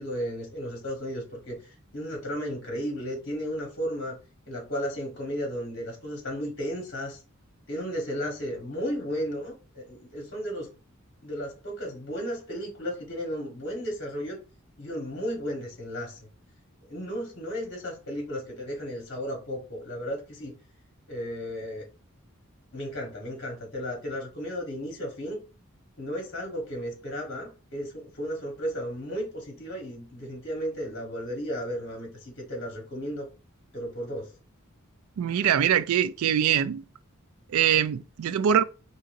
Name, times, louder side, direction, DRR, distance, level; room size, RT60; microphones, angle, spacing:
voice 1, 0.0-4.2 4.5-7.2 7.7-10.7 11.2-14.4 14.8-16.2 16.9-20.5 21.1-21.9 22.7-25.4 26.0-33.3 33.7-34.3, equal, 55° left, 1.2 m, -34 dB
voice 2, 35.2-36.8 37.5-38.6, right 9 dB, 80° right, 0.3 m, -23 dB
3.9 x 2.8 x 2.5 m
head